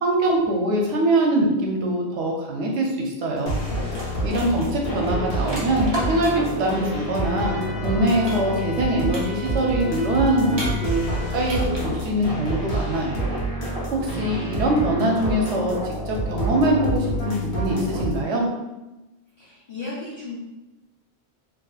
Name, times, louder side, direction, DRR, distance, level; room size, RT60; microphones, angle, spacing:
voice 1, 0.0-3.5 4.2-7.6 7.8-13.2 13.9-18.5, right 1 dB, 90° right, 0 dB, 0.9 m, -23 dB
sound 1, 3.4-3.6 3.8-6.6 8.3-8.8 9.1-9.7 10.5-11.1 11.4-11.9, right 1 dB, 30° right, 0.5 m, -33 dB
sound 2, 3.5-18.2, equal, 60° left, 0.9 m, -28 dB
sound 3, 7.3-11.5, left 2 dB, 5° right, 1.3 m, -41 dB
voice 2, 14.0-15.1 19.4-20.3, left 2 dB, 35° left, -11 dB, 0.6 m, -36 dB
2.8 x 2.4 x 2.3 m, 1.0 s
omnidirectional pair, 1.2 m